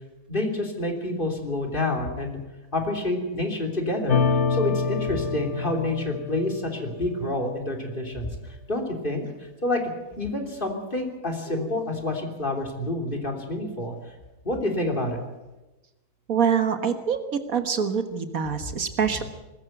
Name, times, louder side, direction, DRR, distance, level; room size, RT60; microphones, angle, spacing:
voice 1, 0.3-2.4 2.7-9.8 10.2-13.9 14.4-15.2, left 1 dB, 35° left, 3 dB, 3.4 m, -28 dB
sound 1, 4.1-7.6, left 5 dB, 50° left, 1.2 m, -27 dB
voice 2, 16.3-17.2 17.5-19.2, right 7 dB, 70° right, 8 dB, 1.9 m, -25 dB
20.5 x 14.0 x 9.2 m, 1.1 s
omnidirectional pair, 1.6 m